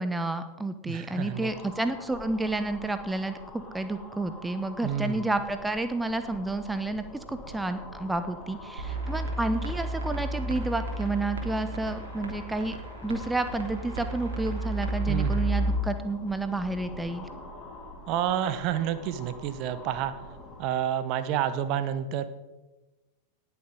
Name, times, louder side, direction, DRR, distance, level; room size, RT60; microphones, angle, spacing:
voice 1, 0.0-3.4 3.7-12.8 13.0-17.3, right 2 dB, 5° right, 10 dB, 0.8 m, -30 dB
voice 2, 0.9-1.5 4.8-5.3 15.1-15.5 18.1-20.1 20.6-22.3, right 10 dB, 40° right, 12 dB, 0.8 m, -29 dB
sound 1, 1.0-20.9, left 2 dB, 25° left, 2.4 m, -46 dB
sound 2, 8.8-15.7, right 2 dB, 65° right, 3.0 m, -32 dB
18.5 x 7.0 x 5.1 m, 1.1 s
figure-of-eight pair, 90°, 0 cm